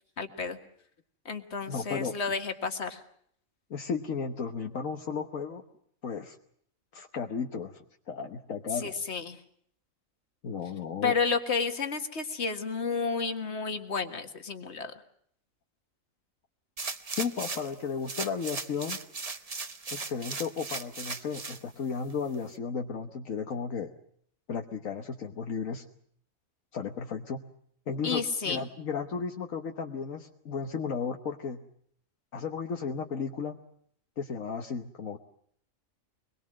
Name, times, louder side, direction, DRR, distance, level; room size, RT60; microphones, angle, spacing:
voice 1, 0.2-0.6 1.3-3.0 8.8-9.4 11.0-14.9 28.0-28.6, left 5 dB, 55° left, 6 dB, 2.0 m, -31 dB
voice 2, 1.7-2.1 3.7-5.6 6.0-6.4 6.9-8.9 10.4-11.1 17.2-19.0 19.9-23.9 24.5-25.8 26.7-27.4 27.9-31.6 32.3-33.6 34.2-35.2, left 5 dB, 75° left, 4 dB, 1.6 m, -34 dB
sound 1, 16.8-17.7 18.1-21.6 22.1-22.2, right 4 dB, 30° right, 1.0 m, -37 dB
24.0 x 22.0 x 7.6 m, 0.65 s
omnidirectional pair, 1.4 m